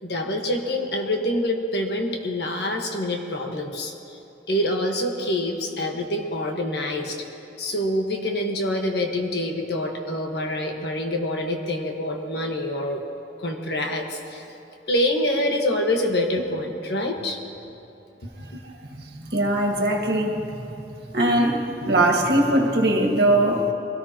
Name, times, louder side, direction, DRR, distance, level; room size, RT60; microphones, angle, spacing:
voice 1, 0.0-3.9 4.5-7.2 7.6-13.0 13.4-14.4 14.9-17.4, left 1 dB, 70° left, 2 dB, 1.6 m, -26 dB
voice 2, 19.3-20.6 21.1-21.6 21.8-23.7, right 1 dB, 65° right, 0 dB, 1.9 m, -20 dB
23.0 x 17.5 x 3.0 m, 2.8 s
head